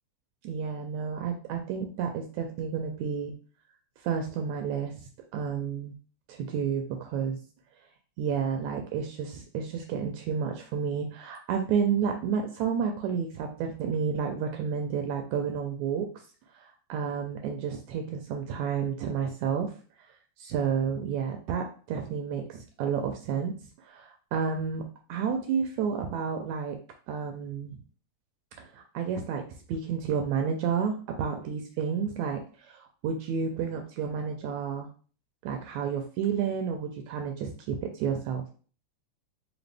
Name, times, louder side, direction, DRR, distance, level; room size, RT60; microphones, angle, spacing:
voice 1, 0.4-3.3 4.0-5.0 5.3-6.0 6.3-7.4 8.2-16.1 16.5-19.7 20.4-23.5 23.8-24.8 25.1-26.8 27.1-27.7 28.6-29.4 29.7-34.9 35.4-38.4, right 7 dB, 80° right, 4 dB, 1.8 m, -31 dB
4.9 x 2.2 x 3.3 m, 0.40 s
omnidirectional pair, 3.5 m